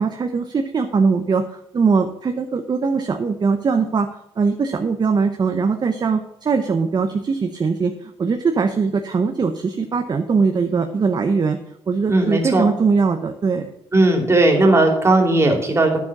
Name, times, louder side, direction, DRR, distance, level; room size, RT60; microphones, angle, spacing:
voice 1, 0.0-4.1 4.4-11.6 11.9-13.7, right 5 dB, 40° right, 6 dB, 0.8 m, -21 dB
voice 2, 12.1-12.7 13.9-16.0, right 2 dB, 25° right, 3 dB, 2.7 m, -16 dB
9.4 x 7.3 x 6.0 m, 0.76 s
cardioid pair, 85°, 11 cm